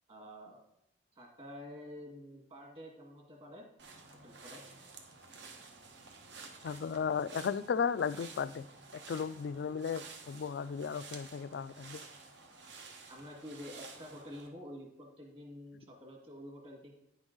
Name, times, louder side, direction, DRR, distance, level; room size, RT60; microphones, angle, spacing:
voice 1, 0.1-0.6 1.1-3.7 4.2-4.6 13.1-16.9, left 1 dB, 30° right, 1 dB, 1.8 m, -48 dB
sound 1, 3.8-14.5, right 4 dB, 70° right, 1.2 m, -52 dB
voice 2, 6.6-8.6 9.1-12.0, left 6 dB, 65° left, 16 dB, 0.3 m, -35 dB
9.8 x 6.2 x 3.8 m, 0.84 s
head